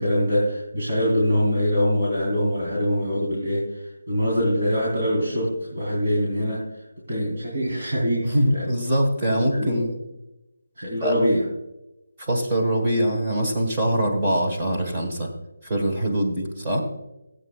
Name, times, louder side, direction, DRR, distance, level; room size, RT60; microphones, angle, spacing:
voice 1, 0.0-6.6 7.1-8.7 9.2-9.9 10.8-11.4, equal, 45° right, -5 dB, 3.0 m, -24 dB
voice 2, 8.2-10.0 11.0-11.1 12.2-15.3 15.6-16.8, equal, 15° right, -2 dB, 1.3 m, -23 dB
16.5 x 8.2 x 2.3 m, 0.93 s
hypercardioid pair, 180°, 0 cm